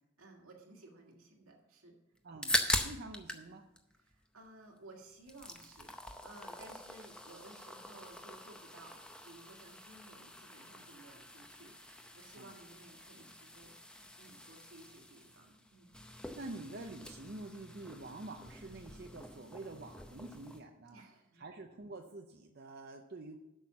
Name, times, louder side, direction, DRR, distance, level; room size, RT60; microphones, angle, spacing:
voice 1, 0.2-2.0 4.0-16.0 20.9-21.5, right 2 dB, 80° right, 0 dB, 2.0 m, -57 dB
sound 1, 2.2-3.5 3.8-4.8 5.1-20.6, left 1 dB, 5° left, 0.6 m, -42 dB
voice 2, 2.2-3.7 12.4-12.5 16.3-21.0 21.4-23.4, right 2 dB, 45° right, 4 dB, 0.6 m, -47 dB
8.0 x 6.3 x 7.3 m, 0.95 s
head